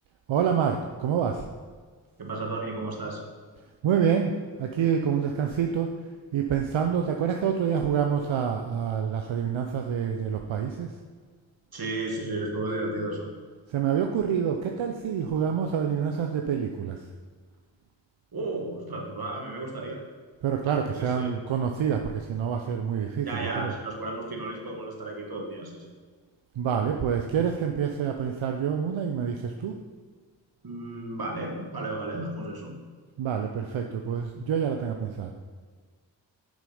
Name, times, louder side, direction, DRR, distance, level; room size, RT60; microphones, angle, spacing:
voice 1, 0.3-1.5 3.8-11.0 13.7-17.0 20.4-23.7 26.6-29.8 33.2-35.3, right 7 dB, 75° right, 4 dB, 0.6 m, -27 dB
voice 2, 2.2-3.2 11.7-13.3 18.3-20.0 21.0-21.3 23.2-25.9 30.6-32.8, right 2 dB, 50° right, 0 dB, 1.7 m, -33 dB
6.2 x 5.1 x 5.4 m, 1.5 s
cardioid pair, 40°, 46 cm